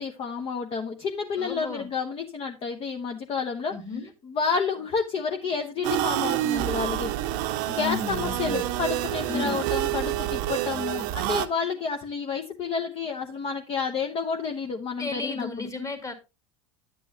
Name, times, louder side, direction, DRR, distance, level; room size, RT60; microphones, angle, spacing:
voice 1, 0.0-3.7 4.2-7.1 7.7-15.7, left 5 dB, 35° left, 1.1 m, -30 dB
voice 2, 1.4-1.9 3.7-4.1 7.7-8.7 9.3-9.6 15.0-16.1, left 4 dB, 20° left, 2.1 m, -34 dB
sound 1, 5.8-11.5, right 14 dB, 55° right, 0.8 m, -28 dB
10.5 x 8.3 x 2.9 m
hypercardioid pair, 80°, 17 cm